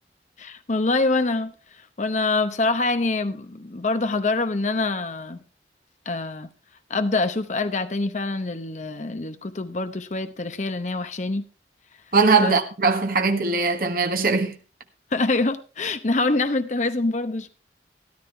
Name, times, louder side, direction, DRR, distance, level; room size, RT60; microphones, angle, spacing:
voice 1, 0.4-1.5 2.0-5.4 6.1-6.5 6.9-11.5 12.4-12.5 15.1-17.5, left 3 dB, 40° left, 0.8 m, -25 dB
voice 2, 12.1-14.5, right 4 dB, 55° right, 1.2 m, -20 dB
13.5 x 12.0 x 3.3 m
head